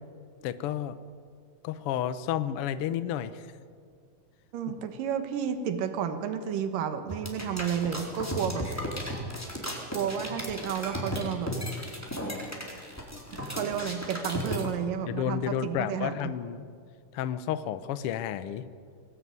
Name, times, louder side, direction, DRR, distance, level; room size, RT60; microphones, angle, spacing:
voice 1, 0.4-1.0 1.6-3.5 15.1-16.6 17.1-18.6, left 10 dB, 85° left, 13 dB, 1.2 m, -31 dB
voice 2, 4.5-8.7 9.9-11.5 13.3-16.3, right 8 dB, 85° right, 8 dB, 3.0 m, -31 dB
sound 1, 7.1-14.7, equal, 5° left, 3.7 m, -35 dB
23.5 x 18.5 x 9.5 m, 2.2 s
omnidirectional pair, 3.8 m